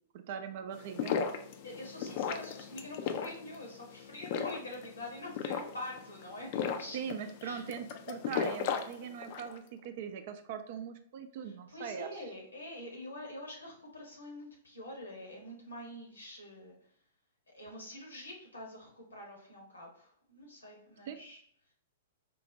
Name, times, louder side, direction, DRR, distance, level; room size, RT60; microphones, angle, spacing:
voice 1, 0.1-1.2 6.9-12.2 21.1-21.2, right 7 dB, 50° right, 8 dB, 0.4 m, -41 dB
sound 1, 0.7-9.6, left 7 dB, 45° left, 0.4 m, -36 dB
voice 2, 1.6-7.0 7.4-7.6 11.4-16.8 17.5-21.4, left 1 dB, 85° left, -1 dB, 1.3 m, -45 dB
4.4 x 2.1 x 2.7 m, 0.63 s
figure-of-eight pair, 110°, 0 cm